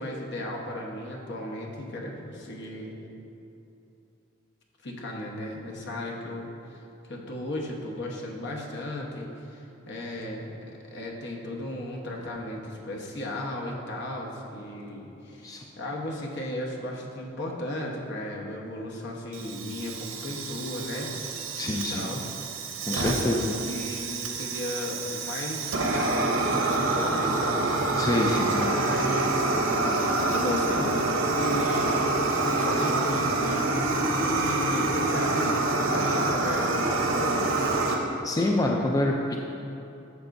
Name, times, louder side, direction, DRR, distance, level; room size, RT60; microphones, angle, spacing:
voice 1, 0.0-3.0 4.8-6.8 7.1-22.2 22.8-28.1 28.3-29.5 30.3-37.4, left 1 dB, 60° left, -1 dB, 1.1 m, -35 dB
Fire, 19.3-37.9, right 2 dB, 75° right, 0.8 m, -27 dB
voice 2, 21.6-22.1 22.9-23.5 28.0-28.8 37.9-39.1, left 1 dB, 15° left, 0 dB, 0.4 m, -27 dB
11.0 x 7.0 x 2.6 m, 2.9 s
head